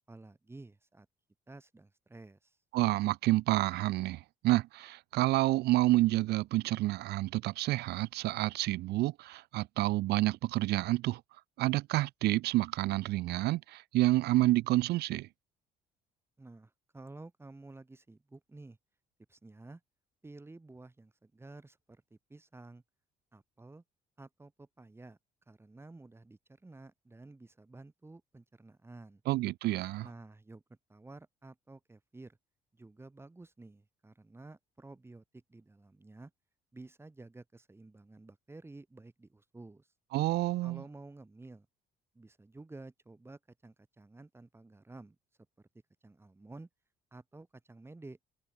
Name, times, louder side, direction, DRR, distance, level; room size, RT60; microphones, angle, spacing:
voice 1, 0.1-1.1 1.5-2.6 16.4-18.8 19.3-19.8 20.2-22.8 23.3-23.8 24.2-25.2 25.5-29.2 30.0-30.6 30.9-32.4 32.7-36.3 36.7-39.9 40.6-41.7 42.1-45.2 45.6-45.7 46.0-46.7 47.1-48.2, right 2 dB, 15° right, 4.9 m, -52 dB
voice 2, 2.7-11.2 11.6-15.3 29.3-30.1 40.1-40.8, right 17 dB, 80° right, 0.9 m, -29 dB
cardioid pair, 110°, 17 cm